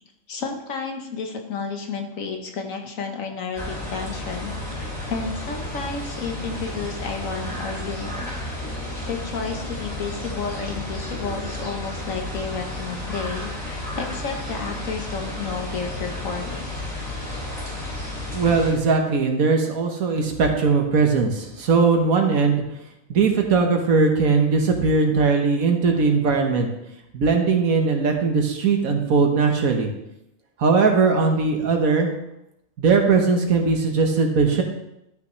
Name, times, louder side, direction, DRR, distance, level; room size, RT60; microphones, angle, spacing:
voice 1, 0.3-8.3 9.1-16.6, left 5 dB, 70° left, 3 dB, 1.5 m, -31 dB
sound 1, 3.5-18.7, left 1 dB, 30° left, 3.6 m, -32 dB
voice 2, 18.3-22.6 23.1-26.7 27.1-29.9 30.6-32.1 32.8-34.6, right 4 dB, 80° right, 3 dB, 1.6 m, -19 dB
12.5 x 5.9 x 3.2 m, 0.85 s
omnidirectional pair, 1.5 m